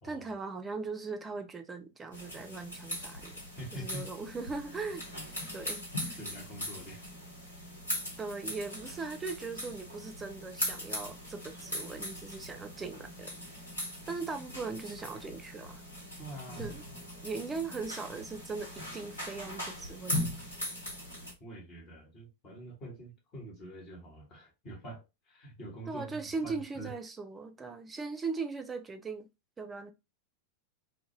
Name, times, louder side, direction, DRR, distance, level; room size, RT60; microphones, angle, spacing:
voice 1, 0.0-3.4 3.7-6.2 8.2-13.3 14.1-15.8 16.6-16.8 17.2-20.3 25.9-29.3 29.6-29.9, right 4 dB, 15° right, 0.4 m, -39 dB
sound 1, 2.1-21.3, left 1 dB, 80° left, 1.0 m, -40 dB
voice 2, 3.6-4.1 6.2-7.0 16.2-16.7 21.4-26.9, right 1 dB, 35° left, 1.2 m, -45 dB
2.3 x 2.1 x 3.0 m
figure-of-eight pair, 90°, 0 cm